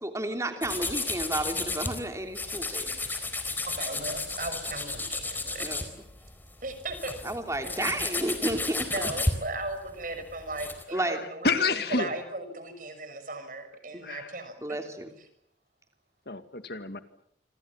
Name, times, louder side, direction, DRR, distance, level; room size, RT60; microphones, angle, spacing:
voice 1, 0.0-2.8 5.6-5.8 7.2-8.9 10.9-11.2 13.9-14.0 14.6-15.1, right 1 dB, 15° right, 5 dB, 3.1 m, -32 dB
sound 1, 0.6-2.0 2.3-6.3 6.7-10.8, left 2 dB, 10° left, 4.1 m, -32 dB
voice 2, 2.7-3.2 10.9-12.1 14.0-14.4 16.3-17.0, left 4 dB, 60° left, 9 dB, 2.3 m, -30 dB
voice 3, 3.6-5.9 6.6-7.2 8.9-14.5, right 2 dB, 45° right, 9 dB, 6.1 m, -37 dB
27.5 x 27.0 x 7.4 m, 0.70 s
head